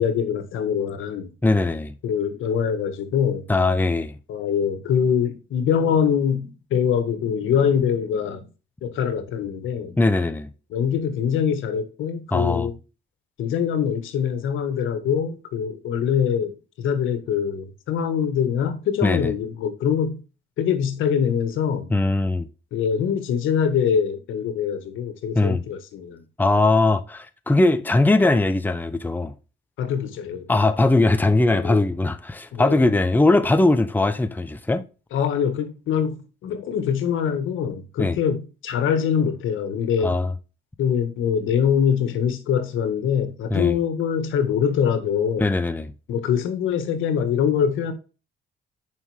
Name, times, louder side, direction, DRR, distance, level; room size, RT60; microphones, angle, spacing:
voice 1, 0.0-1.3 2.0-3.4 4.3-8.5 8.8-10.0 10.7-12.7 13.4-20.2 20.6-21.9 22.7-26.2 29.8-30.6 31.5-31.8 32.5-32.8 35.1-40.1 40.8-45.5 46.1-47.9, left 7 dB, 80° left, 1.7 m, -24 dB
voice 2, 1.4-1.9 3.5-4.1 10.0-10.5 12.3-12.7 19.0-19.3 21.9-22.5 25.3-25.6 26.4-29.3 30.5-34.8 38.0-38.2 40.0-40.3 43.5-43.8 45.4-45.9, left 2 dB, 10° left, 0.8 m, -20 dB
9.2 x 5.7 x 3.5 m
cardioid pair, 90°, 20 cm